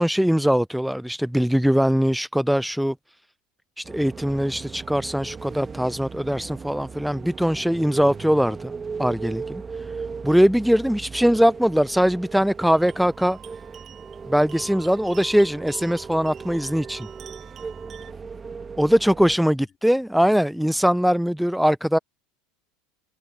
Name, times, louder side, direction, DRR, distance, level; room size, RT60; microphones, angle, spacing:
voice 1, 0.0-2.9 3.8-8.7 9.0-9.6 10.2-13.4 14.3-17.1 18.8-22.0, equal, ahead, 0.3 m, -21 dB
sound 1, 3.8-19.4, right 5 dB, 25° right, 1.6 m, -38 dB
voice 2, 9.6-10.1 17.6-18.4 19.3-19.9, left 7 dB, 30° left, 3.6 m, -58 dB
sound 2, 12.7-18.1, right 9 dB, 40° right, 1.7 m, -46 dB
hypercardioid pair, 100°, 0 cm